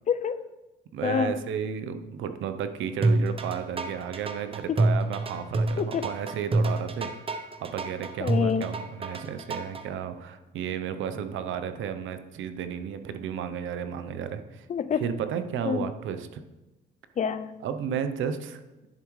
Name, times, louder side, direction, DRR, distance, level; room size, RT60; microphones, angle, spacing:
voice 1, 0.1-0.4 1.0-1.4 4.7-4.8 5.8-6.1 8.2-8.7 14.7-15.1 15.7-15.9 17.2-17.6, left 7 dB, 40° left, 14 dB, 0.4 m, -27 dB
voice 2, 0.9-7.1 7.6-14.7 15.0-16.4 17.6-18.6, right 8 dB, 80° right, 9 dB, 0.7 m, -33 dB
sound 1, 3.0-9.8, right 2 dB, 30° right, 0.7 m, -27 dB
10.5 x 7.3 x 3.2 m, 1.1 s
cardioid pair, 90°, 20 cm